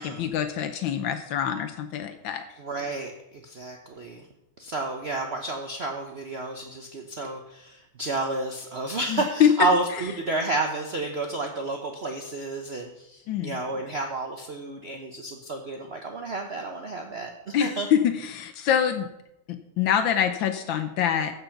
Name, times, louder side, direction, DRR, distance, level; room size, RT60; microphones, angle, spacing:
voice 1, 0.0-2.4 9.1-9.5 13.3-13.6 17.5-19.1 19.5-21.3, left 9 dB, 80° left, 8 dB, 1.5 m, -25 dB
voice 2, 2.6-4.3 4.6-17.9, right 2 dB, 45° right, 2 dB, 0.9 m, -31 dB
15.0 x 5.3 x 5.8 m, 0.85 s
omnidirectional pair, 2.1 m